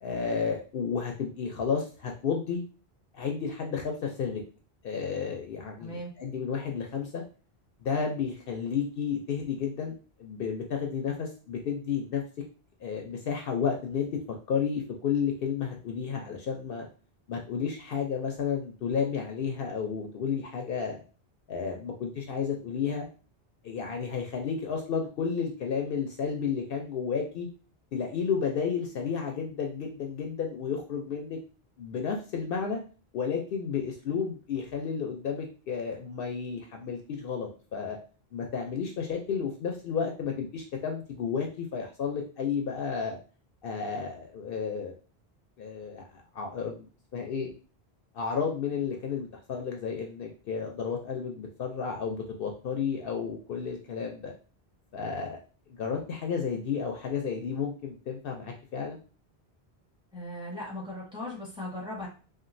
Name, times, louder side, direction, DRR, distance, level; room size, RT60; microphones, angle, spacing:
voice 1, 0.0-2.6 3.1-4.4 4.8-7.2 7.8-9.9 10.2-12.2 12.8-14.1 14.5-16.9 17.3-21.0 21.5-23.1 23.6-27.5 27.9-31.4 31.8-32.8 33.1-38.0 38.3-43.2 43.6-44.9 45.6-47.5 48.1-54.3 54.9-55.4 55.7-59.0, left 6 dB, 65° left, 2 dB, 0.7 m, -32 dB
voice 2, 5.8-6.1 60.1-62.1, left 1 dB, 5° right, -5 dB, 1.1 m, -38 dB
2.9 x 2.4 x 2.5 m, 0.36 s
omnidirectional pair, 1.0 m